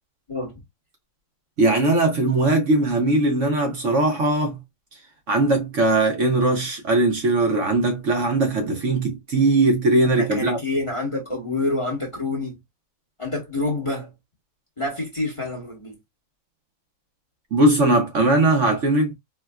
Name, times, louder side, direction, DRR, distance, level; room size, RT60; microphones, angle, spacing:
voice 1, 0.3-0.6 10.0-12.6 13.2-14.1 14.8-16.0, left 2 dB, 20° left, 1.1 m, -27 dB
voice 2, 1.6-4.6 5.3-10.6 17.5-19.1, right 2 dB, 55° right, 1.1 m, -20 dB
4.5 x 2.2 x 2.2 m
omnidirectional pair, 1.6 m